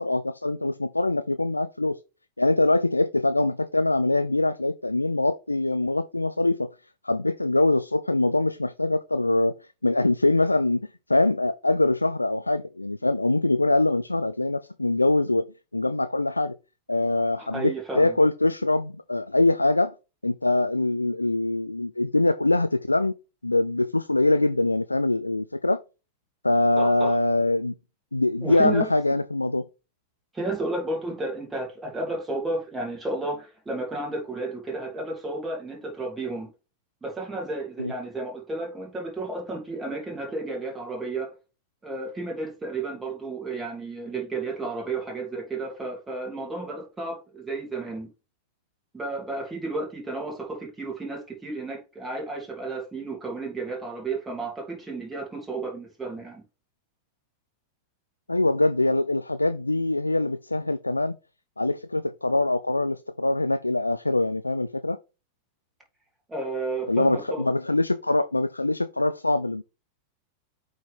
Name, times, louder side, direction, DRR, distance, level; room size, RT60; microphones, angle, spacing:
voice 1, 0.0-2.0 2.4-6.7 7.0-9.6 9.8-10.8 11.1-15.5 15.7-16.6 16.9-19.9 20.2-23.2 23.4-25.8 26.4-27.7 28.1-29.7 37.8-37.9 58.3-61.2 61.6-65.0 66.9-69.6, left 2 dB, 85° left, 0.3 m, -23 dB
voice 2, 17.4-18.2 26.8-27.1 28.4-28.9 30.3-36.5 37.0-41.3 41.8-48.1 48.9-56.4 66.3-67.4, right 2 dB, 10° right, 2.9 m, -32 dB
8.6 x 3.8 x 3.4 m
figure-of-eight pair, 90°, 0 cm